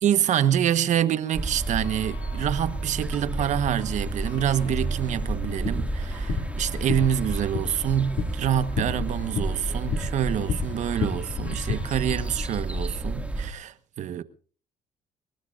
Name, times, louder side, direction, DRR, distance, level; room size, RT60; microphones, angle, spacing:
voice 1, 0.0-14.2, right 10 dB, 65° right, 1.3 m, -26 dB
sound 1, 1.3-12.6, left 14 dB, 90° left, 4.9 m, -51 dB
sound 2, 1.3-13.5, right 2 dB, 10° right, 2.2 m, -31 dB
sound 3, 5.2-11.8, left 7 dB, 75° left, 2.4 m, -33 dB
23.0 x 20.5 x 2.6 m
supercardioid pair, 80°, 14 cm